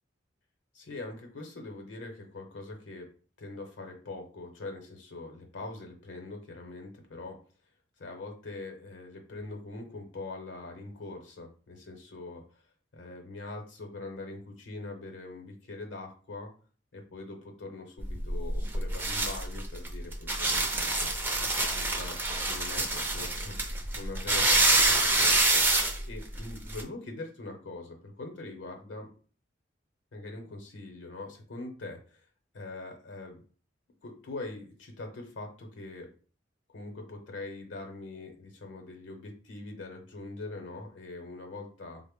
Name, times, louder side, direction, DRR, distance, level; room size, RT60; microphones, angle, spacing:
voice 1, 0.7-3.1 3.4-7.4 8.0-12.4 12.9-16.5 16.9-21.4 21.7-29.1 30.1-32.3 32.5-33.4 34.0-36.1 36.7-42.0, left 2 dB, 80° left, 3 dB, 0.7 m, -43 dB
sound 1, 18.0-26.8, right 2 dB, 10° right, 0.4 m, -27 dB
3.7 x 2.0 x 3.5 m, 0.40 s
head